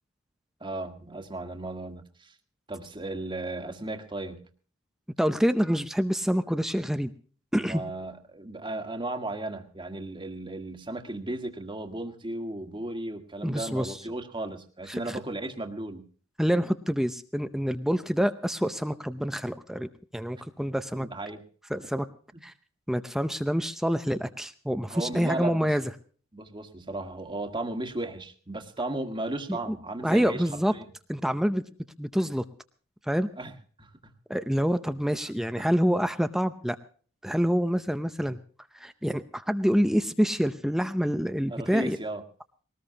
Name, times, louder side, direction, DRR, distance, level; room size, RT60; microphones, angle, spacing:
voice 1, 0.6-2.3 2.7-4.4 7.6-16.1 20.9-21.4 21.8-21.9 24.9-25.7 26.3-30.9 33.4-33.5 33.8-33.9 35.6-35.7 41.5-42.2, right 2 dB, 25° right, 6 dB, 1.7 m, -35 dB
voice 2, 5.2-7.1 7.5-7.8 13.4-14.0 14.9-15.2 16.4-21.1 21.7-22.1 22.4-22.5 22.9-25.8 29.5-29.6 30.0-30.7 31.1-31.6 32.0-32.4 33.1-33.3 34.3-36.8 37.2-38.4 38.7-42.0, equal, ahead, 9 dB, 0.6 m, -27 dB
21.0 x 19.0 x 2.8 m, 0.42 s
head